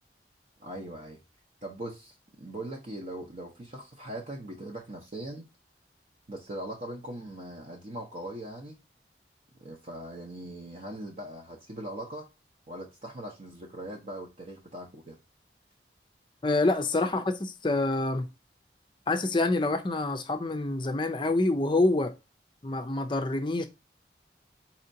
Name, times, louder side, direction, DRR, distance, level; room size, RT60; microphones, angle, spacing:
voice 1, 0.6-1.2 1.6-5.5 6.3-8.8 9.5-12.3 12.7-15.2, right 1 dB, 45° right, 0.7 m, -40 dB
voice 2, 16.4-17.3 17.6-18.3 19.1-22.1 22.6-23.7, left 2 dB, 25° left, 0.5 m, -26 dB
4.2 x 2.8 x 2.6 m
head